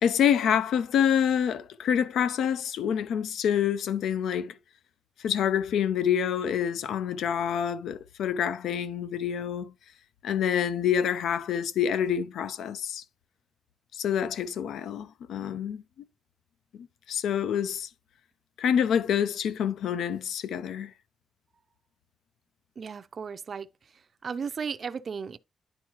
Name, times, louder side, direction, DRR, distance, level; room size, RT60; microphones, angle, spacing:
voice 1, 0.0-4.6 5.2-9.7 10.2-13.0 13.9-15.8 16.8-17.9 18.6-20.9, left 8 dB, 80° left, 0.6 m, -27 dB
voice 2, 22.8-23.7 24.2-25.4, right 6 dB, 35° right, 0.5 m, -35 dB
10.0 x 4.6 x 2.9 m
wide cardioid pair, 170°, 0 cm